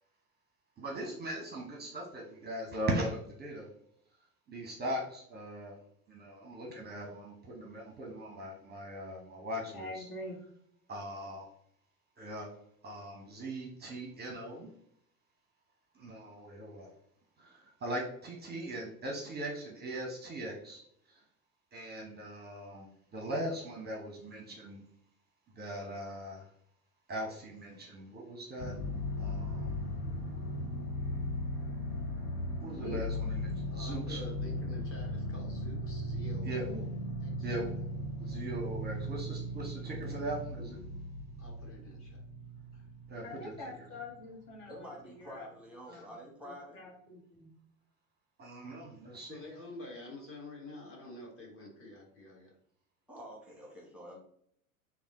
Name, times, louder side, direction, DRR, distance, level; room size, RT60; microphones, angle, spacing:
voice 1, 0.8-3.7 4.5-5.8 6.1-10.1 10.9-11.5 12.2-12.5 12.8-14.7 15.9-16.9 17.4-20.8 21.1-21.2 21.7-24.8 25.6-26.5 27.1-28.7 29.2-29.7 32.6-34.2 36.5-36.6 37.4-37.7 38.2-40.8 43.1-43.2 48.4-49.4, right 1 dB, 25° right, 0 dB, 0.7 m, -40 dB
voice 2, 9.7-10.4 32.6-33.0 36.7-36.8 43.2-45.5 45.9-46.0 46.4-47.5, left 2 dB, 50° left, -1 dB, 1.3 m, -45 dB
sound 1, 28.6-44.2 44.7-44.8, left 1 dB, 85° left, 1.2 m, -37 dB
voice 3, 33.7-36.9 37.2-37.6 41.4-42.2 42.7-42.9 49.2-52.5, left 2 dB, 30° left, -1 dB, 1.4 m, -48 dB
voice 4, 44.7-46.8 53.1-54.2, equal, 5° right, -3 dB, 1.1 m, -48 dB
3.5 x 2.3 x 3.6 m, 0.69 s
hypercardioid pair, 80°, 43 cm